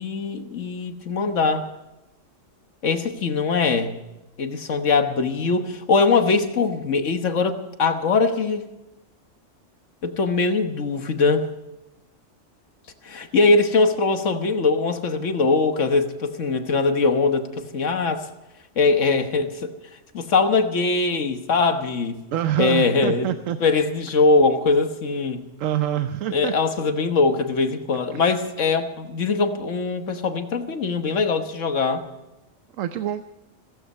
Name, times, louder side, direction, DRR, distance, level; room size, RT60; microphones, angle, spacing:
voice 1, 0.0-1.6 2.8-4.0 4.4-8.6 10.0-11.4 13.0-18.3 18.8-19.7 20.1-22.2 22.6-25.4 26.3-32.0, left 4 dB, 70° left, 7 dB, 1.5 m, -22 dB
voice 2, 22.3-23.6 25.6-26.5 28.1-28.2 32.8-33.2, right 11 dB, 80° right, 10 dB, 1.1 m, -25 dB
16.0 x 15.0 x 5.4 m, 0.96 s
omnidirectional pair, 1.3 m